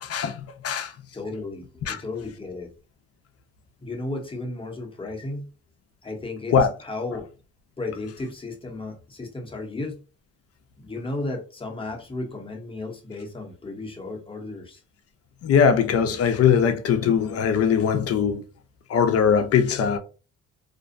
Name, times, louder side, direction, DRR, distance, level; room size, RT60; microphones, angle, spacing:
voice 1, 0.0-0.9 1.8-2.0 6.5-6.7 15.4-18.4 18.9-20.0, left 7 dB, 50° left, 0.5 m, -21 dB
voice 2, 1.1-2.7 3.8-5.5 6.0-6.6 6.8-7.3 7.8-10.0 10.8-14.8, left 2 dB, 15° left, 0.8 m, -34 dB
2.5 x 2.1 x 2.5 m
cardioid pair, 90°, 30 cm